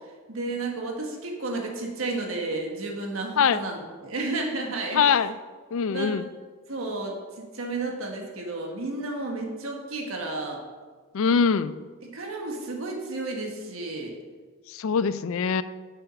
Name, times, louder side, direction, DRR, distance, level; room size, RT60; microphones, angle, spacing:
voice 1, 0.3-5.0 5.9-6.3 6.7-10.6 12.0-14.1, right 2 dB, 75° right, 1 dB, 1.4 m, -32 dB
voice 2, 4.9-5.3 5.7-6.2 11.1-11.7 14.7-15.6, left 6 dB, 75° left, 15 dB, 0.4 m, -23 dB
7.9 x 6.3 x 5.5 m, 1.5 s
head